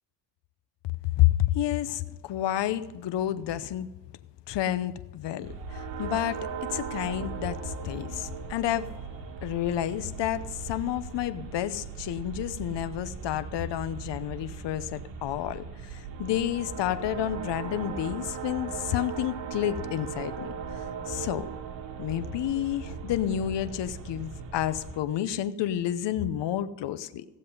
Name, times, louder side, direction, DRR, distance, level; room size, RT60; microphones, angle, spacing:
voice 1, 1.2-3.9 4.5-8.9 9.4-20.5 21.1-21.5 22.0-27.2, left 12 dB, 75° left, 13 dB, 0.8 m, -30 dB
sound 1, 5.4-25.0, right 6 dB, 90° right, 1.7 m, -38 dB
15.5 x 7.6 x 5.3 m, 1.0 s
cardioid pair, 95°, 43 cm